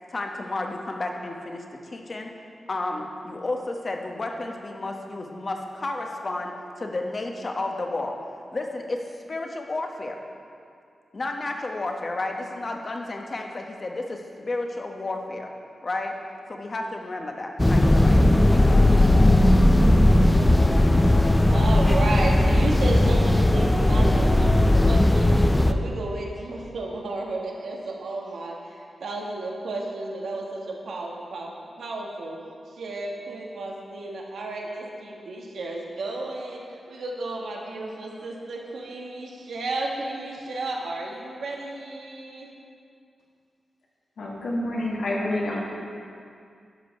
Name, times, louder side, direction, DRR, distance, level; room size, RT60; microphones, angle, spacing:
voice 1, 0.0-2.3 2.7-8.1 8.5-9.0 9.3-10.2 11.1-15.5 15.8-16.1 16.5-18.2 18.5-19.2, left 2 dB, 45° left, 2 dB, 1.1 m, -32 dB
sound 1, 17.6-25.7, left 1 dB, 15° left, 0.5 m, -17 dB
voice 2, 21.5-25.4 25.6-32.4 32.7-42.5, right 2 dB, 85° right, -1 dB, 1.4 m, -33 dB
voice 3, 44.2-45.7, left 1 dB, 85° left, -4 dB, 1.9 m, -28 dB
12.0 x 5.2 x 5.3 m, 2.4 s
cardioid pair, 60°, 0 cm